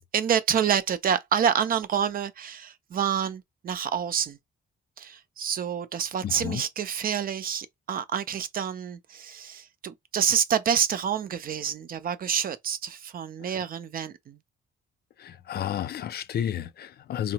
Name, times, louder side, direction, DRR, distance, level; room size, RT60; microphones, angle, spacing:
voice 1, 0.1-4.4 5.0-14.4, right 8 dB, 45° right, 0.5 m, -28 dB
voice 2, 6.2-6.6 13.5-13.6 15.2-17.3, left 10 dB, 55° left, 0.4 m, -31 dB
3.5 x 2.0 x 2.8 m
cardioid pair, 90°, 20 cm